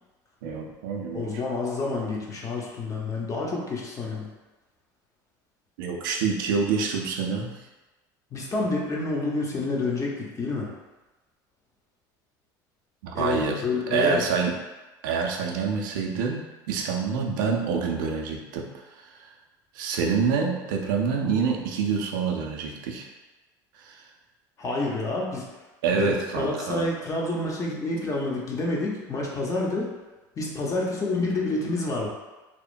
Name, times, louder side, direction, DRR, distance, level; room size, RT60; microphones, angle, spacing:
voice 1, 0.4-1.3 5.8-7.6 13.0-13.6 13.9-14.6 15.0-18.7 19.0-19.1 19.7-23.1 23.8-24.0 25.8-26.9, right 5 dB, 85° right, 1 dB, 0.4 m, -26 dB
voice 2, 1.1-4.3 8.3-10.7 13.1-14.2 24.6-25.5 25.9-26.1 26.4-29.9 30.4-32.1, left 2 dB, 30° left, -2 dB, 0.7 m, -28 dB
2.8 x 2.0 x 2.4 m, 1.1 s
supercardioid pair, 85°, 11 cm